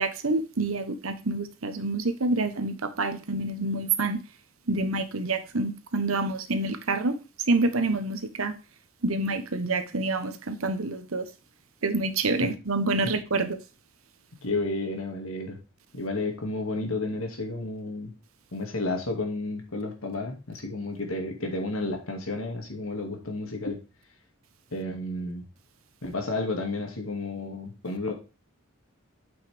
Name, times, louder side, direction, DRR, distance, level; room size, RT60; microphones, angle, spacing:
voice 1, 0.0-4.2 4.7-7.2 7.5-8.5 9.0-11.3 11.8-13.6, right 3 dB, 90° right, 10 dB, 1.1 m, -27 dB
voice 2, 14.4-15.6 15.9-18.1 18.5-23.8 24.7-25.5 26.0-28.1, left 2 dB, 85° left, 3 dB, 2.3 m, -31 dB
8.6 x 5.6 x 3.5 m, 0.31 s
head